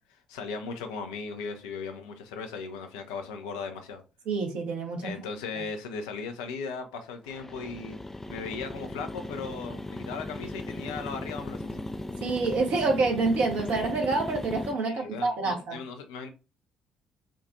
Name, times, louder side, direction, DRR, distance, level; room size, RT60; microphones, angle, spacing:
voice 1, 0.1-4.0 5.0-8.0 8.3-11.9 14.8-16.3, left 5 dB, 70° left, 0.5 m, -37 dB
voice 2, 4.3-5.1 12.2-15.8, right 3 dB, 60° right, 1.1 m, -27 dB
sound 1, 7.3-14.7, left 1 dB, 10° left, 0.4 m, -37 dB
4.5 x 2.4 x 2.6 m
figure-of-eight pair, 45°, 3 cm